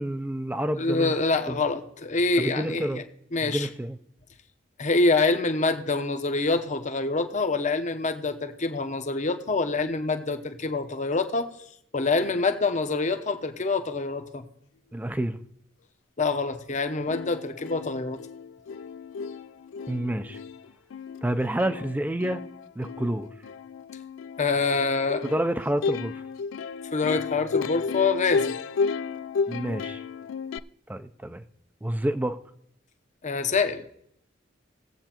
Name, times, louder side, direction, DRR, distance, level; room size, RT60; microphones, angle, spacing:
voice 1, 0.0-1.2 1.5-1.6 2.4-3.0 3.4-4.0 14.9-15.4 19.9-20.4 21.2-22.4 22.8-23.3 25.2-26.2 29.5-30.0 30.9-31.4 31.8-32.4, right 1 dB, 10° right, 10 dB, 0.4 m, -28 dB
voice 2, 0.8-3.0 3.3-3.7 4.8-11.5 11.9-14.4 16.2-18.2 24.4-25.2 26.9-28.6 33.2-33.8, left 3 dB, 40° left, 8 dB, 0.8 m, -26 dB
Plucked string instrument, 16.7-16.8 17.1-30.6, left 5 dB, 85° left, 0.3 m, -33 dB
19.5 x 7.9 x 2.9 m, 0.74 s
head